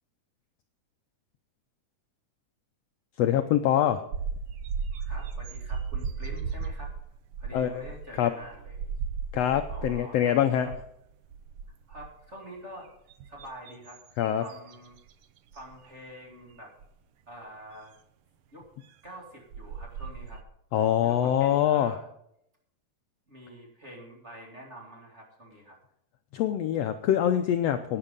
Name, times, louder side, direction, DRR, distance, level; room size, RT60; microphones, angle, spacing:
voice 1, 3.2-4.0 7.5-7.8 8.2-8.3 9.3-10.7 14.2-14.4 20.7-21.9 26.3-28.0, left 10 dB, 75° left, 7 dB, 1.5 m, -24 dB
sound 1, 4.1-10.2 10.5-10.9 11.2-12.2 12.9-15.1 15.5-15.8 16.8-16.9 19.1-19.2 19.5-20.4, right 6 dB, 80° right, 1.2 m, -36 dB
voice 2, 5.1-6.9 7.4-8.8 9.7-10.4 10.6-10.7 11.9-12.9 13.3-14.0 14.4-15.0 15.5-16.7 17.3-17.9 18.5-18.7 19.0-20.4 21.0-22.1 23.3-25.8, right 1 dB, 25° right, -1 dB, 2.4 m, -46 dB
11.5 x 9.9 x 5.2 m, 0.76 s
omnidirectional pair, 3.4 m